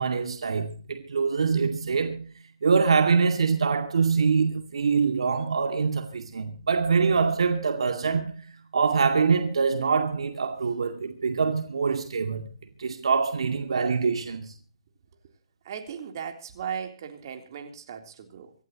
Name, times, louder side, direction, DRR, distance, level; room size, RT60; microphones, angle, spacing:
voice 1, 0.0-2.3 2.6-8.4 8.7-14.5, right 5 dB, 75° right, 2.3 m, -24 dB
voice 2, 15.6-18.5, right 7 dB, 45° right, 3.5 m, -37 dB
26.0 x 12.0 x 3.0 m
hypercardioid pair, 155°, 3 cm